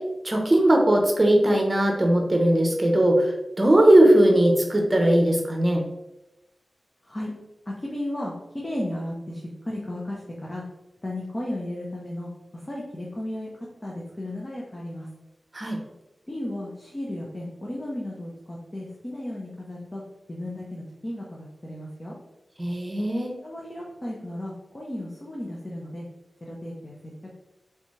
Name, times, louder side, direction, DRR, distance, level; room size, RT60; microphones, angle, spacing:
voice 1, 0.2-5.8 15.5-15.8 22.6-23.3, right 1 dB, 30° right, 1 dB, 0.9 m, -19 dB
voice 2, 7.7-10.6 11.0-15.1 16.3-20.0 20.3-22.1 23.4-26.0 26.4-27.3, left 1 dB, 25° left, -4 dB, 0.9 m, -34 dB
3.9 x 3.5 x 3.2 m, 0.95 s
wide cardioid pair, 75°, 0 cm